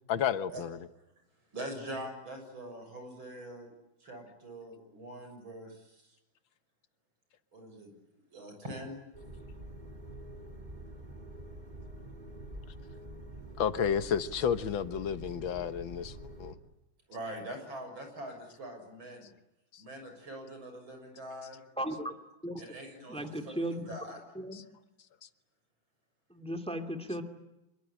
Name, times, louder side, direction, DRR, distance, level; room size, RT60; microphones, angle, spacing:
voice 1, 0.1-0.8 13.6-16.6 19.7-19.8 24.5-24.6, left 8 dB, 80° left, 12 dB, 2.0 m, -31 dB
voice 2, 1.5-3.7 4.0-6.2 7.5-7.9 8.3-9.0 17.1-19.3 19.8-21.6 22.6-24.2, right 1 dB, 85° right, 5 dB, 7.4 m, -43 dB
sound 1, 9.1-16.5, right 1 dB, 20° right, 3.3 m, -46 dB
voice 3, 21.8-22.1 22.4-22.6 23.1-23.9 24.3-24.6 26.3-27.2, right 1 dB, 5° left, 7 dB, 2.4 m, -36 dB
26.0 x 22.5 x 9.9 m, 0.91 s
omnidirectional pair, 2.1 m